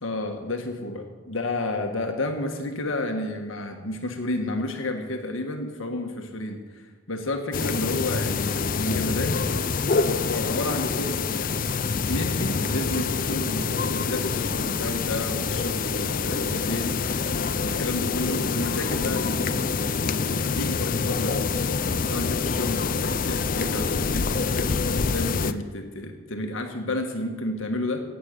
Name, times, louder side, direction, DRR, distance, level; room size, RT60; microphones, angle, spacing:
voice 1, 0.0-9.4 10.0-11.7 12.0-16.9 17.6-21.4 22.1-28.0, left 1 dB, 65° left, 4 dB, 1.5 m, -31 dB
sound 1, 7.5-25.5, left 5 dB, 40° left, 0.5 m, -26 dB
17.0 x 8.5 x 6.7 m, 1.5 s
head